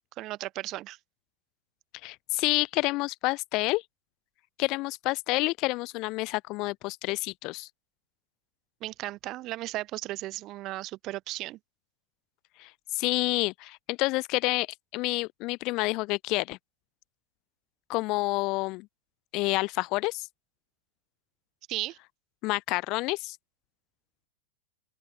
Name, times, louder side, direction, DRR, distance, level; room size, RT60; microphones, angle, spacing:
voice 1, 0.2-1.0 8.8-11.6 21.7-22.0, right 17 dB, 35° right, 2.1 m, -35 dB
voice 2, 2.0-3.8 4.6-7.7 12.6-14.7 14.9-16.6 17.9-18.9 19.3-20.3 22.4-23.4, left 23 dB, 40° left, 0.9 m, -28 dB
open air
figure-of-eight pair, 90°, 0 cm